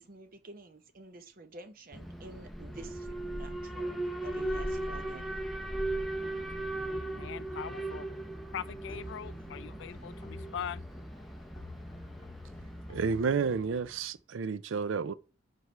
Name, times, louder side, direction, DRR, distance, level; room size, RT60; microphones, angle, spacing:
voice 1, 0.0-4.0 4.2-5.3, right 2 dB, 45° right, 0.8 m, -50 dB
Alarm, 1.9-13.9, right 1 dB, ahead, 0.7 m, -38 dB
sound 1, 5.6-13.2, left 2 dB, 25° left, 1.7 m, -51 dB
voice 2, 6.9-8.1 8.5-10.8, left 8 dB, 65° left, 0.3 m, -41 dB
voice 3, 12.9-15.1, right 5 dB, 75° right, 0.4 m, -31 dB
4.8 x 4.6 x 5.5 m
head